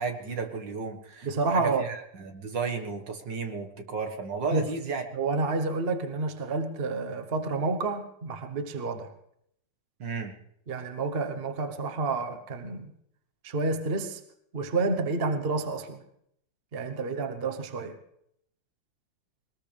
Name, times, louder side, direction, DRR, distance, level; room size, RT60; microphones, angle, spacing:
voice 1, 0.0-5.0 10.0-10.4, right 5 dB, 70° right, 2.3 m, -33 dB
voice 2, 1.2-1.8 4.5-4.7 5.1-9.1 10.7-12.9 13.4-14.2 14.5-16.0 16.7-18.0, right 3 dB, 35° right, 1.1 m, -29 dB
21.5 x 20.0 x 3.4 m
omnidirectional pair, 2.1 m